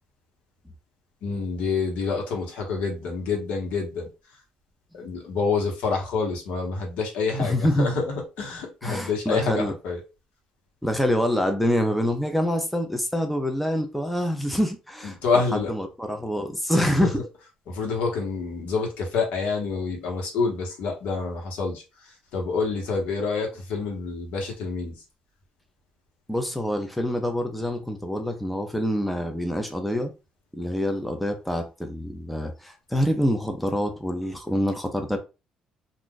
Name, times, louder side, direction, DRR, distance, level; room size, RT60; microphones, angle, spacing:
voice 1, 1.2-4.1 4.9-10.0 15.0-15.7 17.0-17.1 17.7-21.8 22.3-25.0, left 4 dB, 80° left, 1.2 m, -27 dB
voice 2, 7.4-7.9 8.8-9.7 10.8-17.2 26.3-30.1 30.5-35.2, equal, ahead, 0.4 m, -26 dB
2.5 x 2.4 x 3.7 m
cardioid pair, 140°, 2 cm